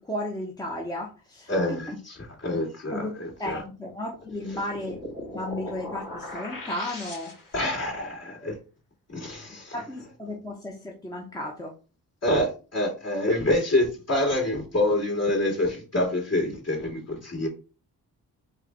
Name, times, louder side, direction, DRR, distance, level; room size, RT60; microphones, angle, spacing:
voice 1, 0.0-2.0 2.9-3.1 3.4-5.0 5.3-7.3 9.7-11.7, left 1 dB, 10° left, 1.0 m, -34 dB
voice 2, 1.5-2.2 2.4-3.1 3.4-3.6 5.3-5.4 7.5-8.5 9.1-9.7 12.2-17.5, left 1 dB, 40° left, 2.7 m, -26 dB
sound 1, 4.1-7.7, left 1 dB, 55° left, 2.6 m, -39 dB
4.5 x 2.4 x 4.6 m
cardioid pair, 80°, 38 cm